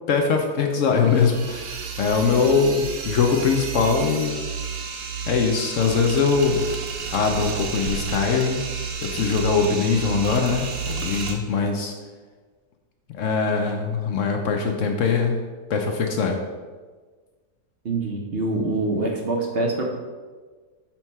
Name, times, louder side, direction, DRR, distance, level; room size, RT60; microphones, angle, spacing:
voice 1, 0.1-4.4 5.3-6.7 7.1-8.6 9.0-11.9 13.1-15.4 15.7-16.4, left 5 dB, 70° left, 3 dB, 0.7 m, -22 dB
sound 1, 1.0-11.3, right 5 dB, 85° right, 1.3 m, -31 dB
voice 2, 17.8-19.9, right 2 dB, 60° right, 0 dB, 0.6 m, -25 dB
5.7 x 3.0 x 5.4 m, 1.4 s
omnidirectional pair, 1.7 m